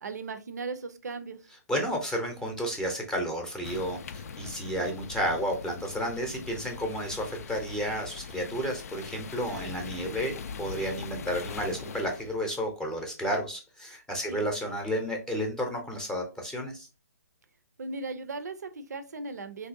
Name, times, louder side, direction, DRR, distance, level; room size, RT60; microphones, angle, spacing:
voice 1, 0.0-1.4 9.4-9.7 14.3-14.4 17.8-19.7, right 3 dB, 75° right, 10 dB, 0.5 m, -37 dB
voice 2, 1.7-16.9, equal, 5° left, 2 dB, 0.6 m, -32 dB
sound 1, 3.6-12.4, left 6 dB, 65° left, 0.4 m, -41 dB
3.2 x 2.7 x 2.5 m, 0.31 s
hypercardioid pair, 140°, 9 cm